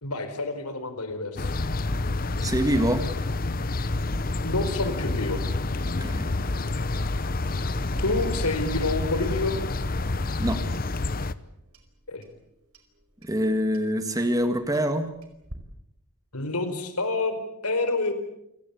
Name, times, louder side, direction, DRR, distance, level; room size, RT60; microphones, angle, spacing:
voice 1, 0.0-1.5 4.4-5.4 8.0-9.6 12.1-12.2 16.3-18.1, left 2 dB, 90° left, 10 dB, 4.4 m, -28 dB
sound 1, 1.4-11.3, left 2 dB, 40° left, 1.0 m, -28 dB
voice 2, 2.4-3.0 5.8-6.3 10.4-10.6 13.2-15.1, equal, 15° right, 8 dB, 1.9 m, -25 dB
Clock, 7.8-15.5, equal, 75° right, 4.9 m, -50 dB
28.5 x 18.5 x 8.5 m, 0.80 s
head